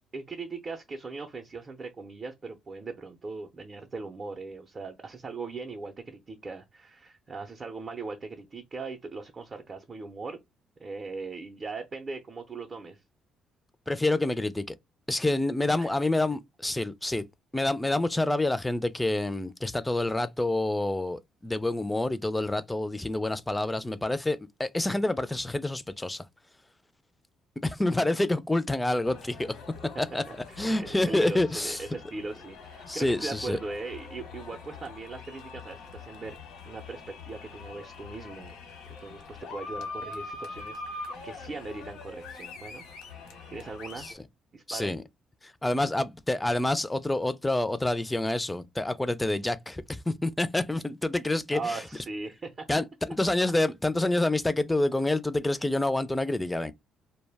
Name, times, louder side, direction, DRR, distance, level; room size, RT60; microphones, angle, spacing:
voice 1, 0.1-10.4 10.8-13.0 15.8-15.9 30.3-36.4 36.6-38.6 39.0-42.8 43.1-44.1 44.5-45.0 51.5-52.7, right 3 dB, 40° right, 0.5 m, -39 dB
voice 2, 13.9-14.7 15.1-17.2 17.5-26.2 27.6-29.6 30.0-30.2 30.6-31.8 32.9-33.6 44.0-44.1 44.7-45.0 45.4-51.8 52.7-56.7, left 2 dB, 10° left, 0.3 m, -27 dB
sound 1, 29.0-44.1, left 4 dB, 85° left, 0.9 m, -43 dB
2.2 x 2.1 x 3.3 m
cardioid pair, 80°, 0 cm